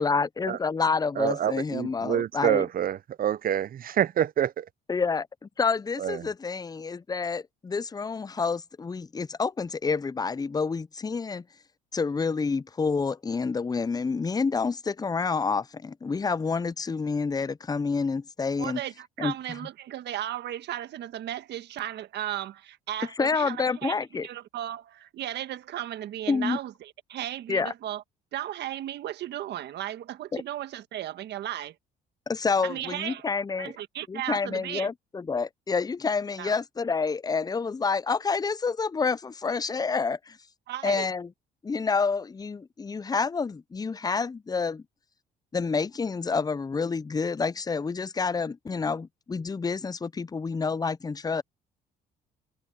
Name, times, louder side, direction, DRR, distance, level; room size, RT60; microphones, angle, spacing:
voice 1, 0.0-2.7 4.9-11.4 11.9-18.8 19.2-19.3 23.2-24.3 26.3-26.6 27.5-27.7 30.3-30.4 32.3-33.7 34.1-40.4 40.8-41.3 41.6-44.8 45.5-51.4, left 4 dB, 20° left, 0.6 m, -28 dB
voice 2, 1.2-4.6 6.0-6.2, right 10 dB, 50° right, 0.8 m, -27 dB
voice 3, 18.6-23.9 24.2-28.0 28.3-31.8 32.6-33.3 33.6-34.9 36.4-36.6 40.7-41.1, right 12 dB, 65° right, 1.5 m, -35 dB
supercardioid pair, 65°, 19 cm